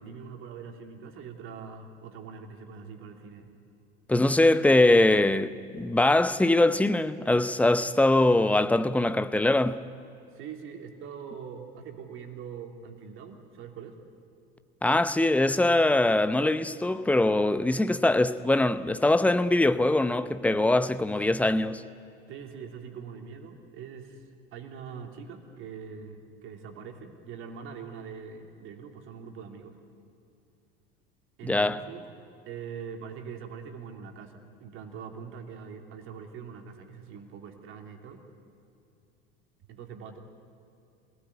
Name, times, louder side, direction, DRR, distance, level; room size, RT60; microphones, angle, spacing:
voice 1, 0.0-3.5 10.3-14.0 22.3-29.8 31.4-32.0 32.5-38.3 39.7-40.2, right 6 dB, 45° right, 3.0 m, -43 dB
voice 2, 4.1-9.8 14.8-21.8 31.4-31.8, left 2 dB, 5° left, 0.8 m, -22 dB
26.5 x 19.0 x 9.6 m
figure-of-eight pair, 75°, 29 cm